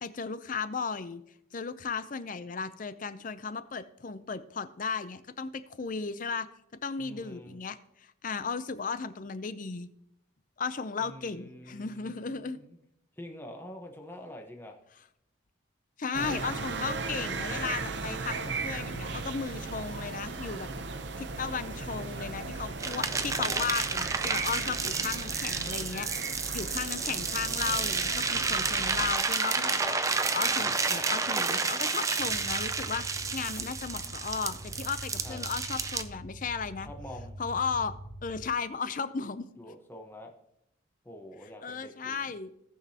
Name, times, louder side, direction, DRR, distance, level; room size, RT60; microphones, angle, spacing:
voice 1, 0.0-1.2 1.5-6.5 6.8-9.9 10.6-12.6 16.0-18.4 18.6-20.7 21.2-36.9 37.4-38.0 38.2-39.5 41.6-42.5, left 5 dB, 40° left, 13 dB, 0.5 m, -35 dB
voice 2, 7.0-7.6 11.0-12.8 13.2-14.8 23.5-23.7 30.5-30.7 33.1-33.9 35.2-35.4 36.8-37.4 39.6-40.3 41.0-42.3, left 1 dB, 10° left, 2 dB, 1.0 m, -46 dB
sound 1, 16.1-29.1, right 4 dB, 60° right, 0.7 m, -37 dB
sound 2, 22.8-36.0, right 4 dB, 15° right, 0.4 m, -31 dB
sound 3, 32.2-38.5, right 1 dB, 90° right, 1.4 m, -45 dB
18.0 x 6.1 x 2.9 m, 0.79 s
head